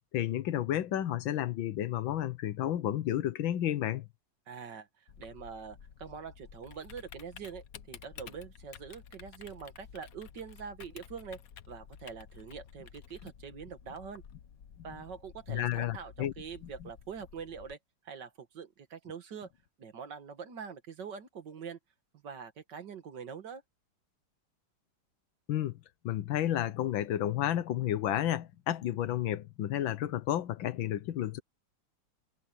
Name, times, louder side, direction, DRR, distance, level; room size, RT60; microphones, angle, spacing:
voice 1, 0.1-4.1 14.8-14.9 15.5-16.3 16.8-16.9 25.5-25.8 26.0-31.4, left 12 dB, 85° left, 1.7 m, -31 dB
voice 2, 4.5-11.4 11.7-14.2 14.8-17.8 18.0-19.5 19.8-21.8 22.2-23.6, right 6 dB, 65° right, 2.2 m, -44 dB
Typing, 5.1-17.7, left 8 dB, 55° left, 1.3 m, -52 dB
omnidirectional pair, 2.1 m